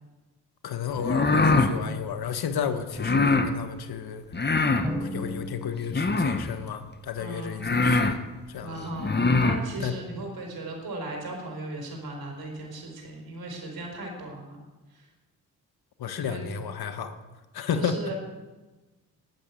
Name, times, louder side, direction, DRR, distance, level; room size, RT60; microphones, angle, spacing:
voice 1, 0.6-4.2 5.0-8.2 8.5-8.9 9.8-9.9 16.0-17.2 17.5-18.0, left 7 dB, 70° left, 10 dB, 1.4 m, -32 dB
sound 1, 1.0-1.7 3.0-3.5 4.3-4.9 5.9-6.5 7.2-7.3 7.6-8.2 9.0-9.6, left 3 dB, 25° left, 1.3 m, -22 dB
Drum, 4.8-6.5, left 1 dB, 5° right, 3.7 m, -35 dB
voice 2, 7.2-7.7 8.6-14.6 16.2-16.4 17.7-18.1, right 2 dB, 65° right, 1 dB, 5.1 m, -37 dB
12.0 x 9.2 x 8.5 m, 1.2 s
supercardioid pair, 55°, 39 cm